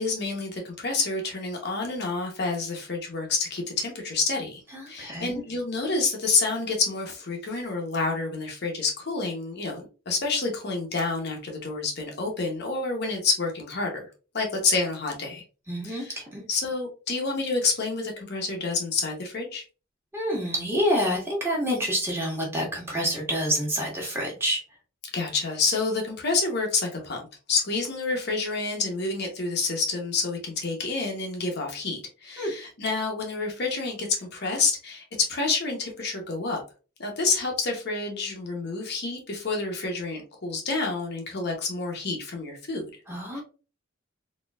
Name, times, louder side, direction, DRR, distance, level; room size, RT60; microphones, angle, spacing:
voice 1, 0.0-4.6 4.9-14.1 14.3-15.4 15.8-16.2 16.5-19.6 25.1-27.2 27.5-36.6 37.0-42.8 43.3-43.4, left 4 dB, 55° left, 1 dB, 0.9 m, -28 dB
voice 2, 4.7-5.4 15.7-16.4 20.1-24.6 32.4-32.5 43.1-43.4, equal, 10° right, -2 dB, 1.4 m, -27 dB
4.1 x 2.9 x 2.3 m, 0.34 s
head